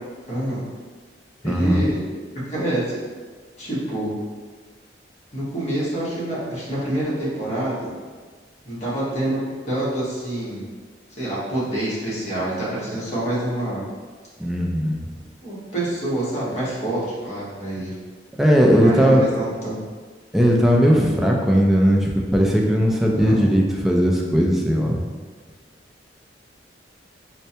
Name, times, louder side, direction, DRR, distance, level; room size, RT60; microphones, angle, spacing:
voice 1, 0.3-0.6 1.4-2.0 2.3-3.0 3.6-4.1 5.3-7.9 8.6-9.4 9.6-10.6 11.1-13.8 15.4-17.9 18.7-19.8 23.2-23.6, right 1 dB, 40° left, -9 dB, 1.2 m, -26 dB
voice 2, 1.4-1.8 14.4-15.0 18.4-19.2 20.3-25.0, equal, ahead, -2 dB, 0.3 m, -18 dB
4.3 x 2.1 x 2.7 m, 1.5 s
head